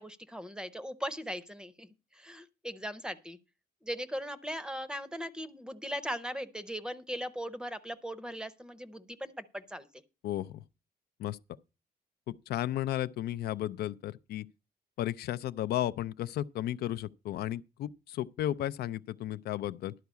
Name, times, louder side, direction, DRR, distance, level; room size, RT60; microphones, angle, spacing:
voice 1, 0.0-3.4 3.8-9.9, equal, 5° right, 0.6 m, -39 dB
voice 2, 10.2-10.6 11.2-11.4 12.3-14.5 15.0-19.9, left 13 dB, 80° left, 0.5 m, -34 dB
11.5 x 4.7 x 8.2 m
cardioid pair, 165°, 16 cm